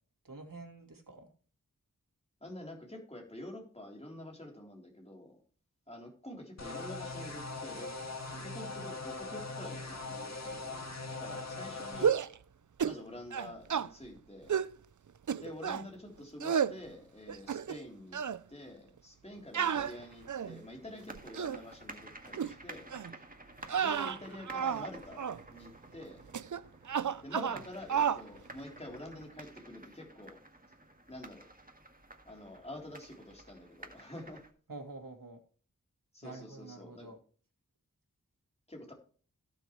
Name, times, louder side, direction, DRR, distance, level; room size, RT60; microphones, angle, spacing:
voice 1, 0.2-1.3 27.5-27.7 34.7-35.4 36.2-37.2, right 3 dB, 85° right, 4 dB, 2.5 m, -47 dB
voice 2, 2.4-5.4 5.9-7.9 8.3-12.2 12.8-14.6 15.4-18.2 18.5-22.9 23.8-26.3 27.2-30.4 31.1-31.5 32.3-34.4 36.1-37.2 38.7-38.9, left 1 dB, 20° left, 0 dB, 3.6 m, -47 dB
sound 1, 6.6-12.1, left 3 dB, 50° left, 2.0 m, -41 dB
sound 2, 11.9-12.4 12.8-13.0 13.3-13.9 14.5-14.7 15.3-15.9 16.4-16.8 17.3-17.9 18.1-18.4 19.5-20.6 21.2-21.6 22.3-22.5 22.9-23.1 23.6-24.9 25.2-25.4 26.3-26.6 26.9-27.6 27.9-28.2, right 7 dB, 65° right, 0.5 m, -31 dB
sound 3, 19.7-34.5, right 2 dB, 25° right, 1.8 m, -52 dB
17.0 x 6.9 x 3.1 m, 0.42 s
wide cardioid pair, 60°, 33 cm